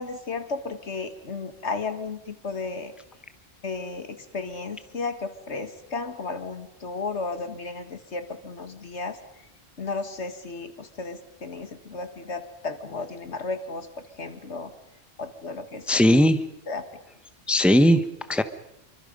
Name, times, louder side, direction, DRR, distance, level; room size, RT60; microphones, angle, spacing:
voice 1, 0.0-2.9 3.6-9.2 9.8-13.9 14.2-14.7 15.2-16.1 16.7-16.8, left 4 dB, 85° left, 9 dB, 2.1 m, -34 dB
voice 2, 15.9-16.4 17.5-18.4, equal, ahead, 11 dB, 1.0 m, -18 dB
27.0 x 24.5 x 5.4 m, 0.84 s
omnidirectional pair, 1.1 m